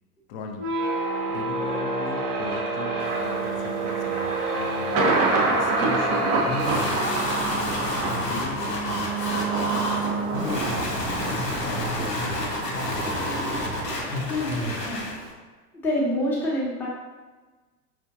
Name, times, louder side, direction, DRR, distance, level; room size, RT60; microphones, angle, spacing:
voice 1, 0.3-0.7 1.3-5.0 5.4-6.4 6.8-7.1 7.4-11.9 12.2-12.9, left 4 dB, 40° left, 4 dB, 0.5 m, -40 dB
sound 1, 0.5-10.9, right 2 dB, 70° right, 0.8 m, -29 dB
Thunder, 3.0-15.3, right 3 dB, 25° right, 0.4 m, -29 dB
sound 2, 6.5-15.2, left 1 dB, 85° left, 0.8 m, -29 dB
voice 2, 15.8-16.9, equal, 5° left, -7 dB, 0.7 m, -25 dB
4.3 x 2.5 x 2.6 m, 1.3 s
figure-of-eight pair, 85°, 47 cm